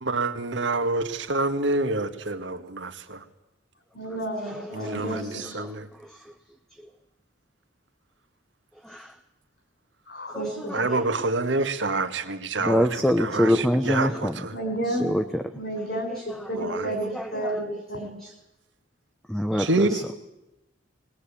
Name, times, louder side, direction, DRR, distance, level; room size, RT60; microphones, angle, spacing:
voice 1, 0.0-3.2 4.7-5.9 10.7-14.5 16.6-16.9 19.6-20.0, right 2 dB, 75° right, 1.8 m, -27 dB
voice 2, 3.9-5.6 10.1-10.8 14.5-15.1 15.5-18.1, right 1 dB, 60° left, 5.3 m, -31 dB
voice 3, 4.8-5.2 5.6-5.7 8.8-9.1 10.3-11.0 12.6-14.4 15.0-15.4 15.9-17.8 18.2-18.3 19.3-20.1, equal, 5° left, 0.9 m, -26 dB
21.5 x 20.0 x 8.5 m
head